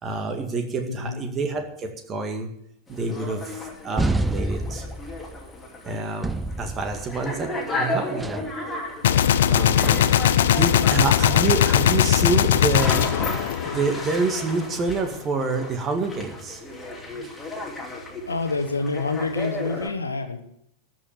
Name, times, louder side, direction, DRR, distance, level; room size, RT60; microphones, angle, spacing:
voice 1, 0.0-2.5 2.9-4.9 5.9-8.5 9.5-9.9 10.5-13.0 13.6-16.6 17.2-17.3, right 4 dB, 25° right, 5 dB, 2.0 m, -27 dB
voice 2, 0.9-1.2 18.3-20.4, left 3 dB, 75° left, 7 dB, 1.4 m, -27 dB
sound 1, 2.9-19.9, left 2 dB, 10° left, 2.8 m, -34 dB
sound 2, 4.0-5.6 6.2-7.5 8.2-8.6 9.8-10.3, right 2 dB, 10° right, 0.5 m, -28 dB
Gunshot gunfire, 9.0-14.3, left 10 dB, 60° left, 0.6 m, -19 dB
13.5 x 6.1 x 9.0 m, 0.72 s
figure-of-eight pair, 90°, 0 cm